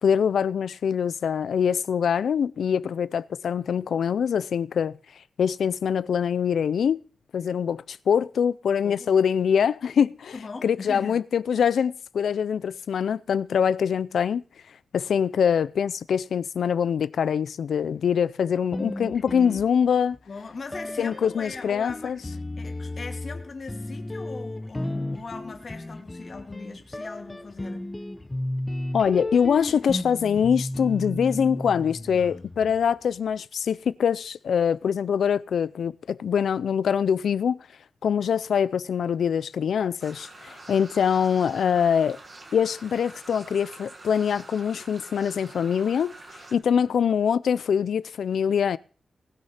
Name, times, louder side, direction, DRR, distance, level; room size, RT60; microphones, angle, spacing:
voice 1, 0.0-4.9 5.4-7.0 7.3-10.3 10.6-14.4 14.9-20.2 21.0-22.2 28.9-37.7 38.0-42.2 42.5-46.1 46.5-48.8, left 7 dB, 85° left, 0.5 m, -24 dB
voice 2, 8.8-9.2 10.3-11.2 20.3-22.2 22.6-27.9 32.2-32.8, left 4 dB, 40° left, 2.3 m, -40 dB
more Jazz guitar, 18.7-20.2 20.7-32.9, left 1 dB, 15° left, 0.9 m, -34 dB
sound 1, 40.0-46.5, right 2 dB, 35° right, 2.4 m, -46 dB
18.5 x 6.5 x 5.8 m
wide cardioid pair, 145°, 0 cm